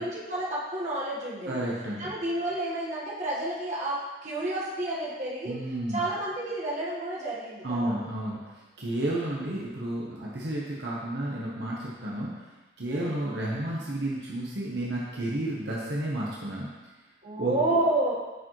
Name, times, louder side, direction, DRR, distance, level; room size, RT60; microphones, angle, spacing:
voice 1, 0.0-1.6 2.0-5.5 5.9-8.0 8.8-8.9 12.9-13.2 17.2-18.1, right 1 dB, 40° right, -7 dB, 1.6 m, -30 dB
voice 2, 1.5-2.1 5.4-6.0 7.6-12.3 12.8-16.7 17.4-17.5, right 1 dB, 65° right, -5 dB, 1.2 m, -31 dB
9.6 x 4.9 x 3.2 m, 1.2 s
head